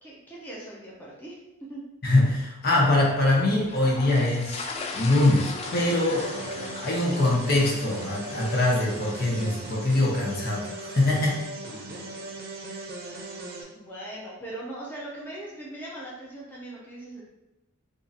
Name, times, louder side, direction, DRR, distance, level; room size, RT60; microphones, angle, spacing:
voice 1, 0.0-1.4 1.7-1.8 13.7-17.2, right 1 dB, 10° left, -6 dB, 0.7 m, -40 dB
voice 2, 2.0-4.6 4.9-10.7 10.9-11.4, left 2 dB, 45° left, -3 dB, 0.8 m, -23 dB
sound 1, 3.7-11.0, left 3 dB, 30° left, 0.3 m, -38 dB
sound 2, 5.6-13.6, right 2 dB, 45° right, 0.7 m, -38 dB
2.8 x 2.6 x 3.9 m, 1.0 s
head